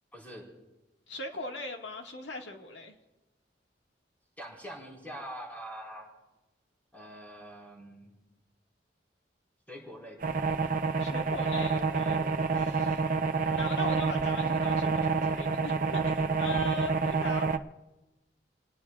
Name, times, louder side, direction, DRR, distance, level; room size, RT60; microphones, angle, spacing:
voice 1, 0.1-0.5 4.4-6.1 6.9-8.1 9.7-10.4, equal, 10° left, -2 dB, 4.6 m, -44 dB
voice 2, 1.1-2.9 11.0-12.2 12.5-13.0 13.5-17.5, left 3 dB, 80° left, 2 dB, 1.8 m, -39 dB
sound 1, 10.2-17.6, right 4 dB, 50° right, 0.6 m, -28 dB
29.0 x 19.0 x 2.4 m, 1.1 s
head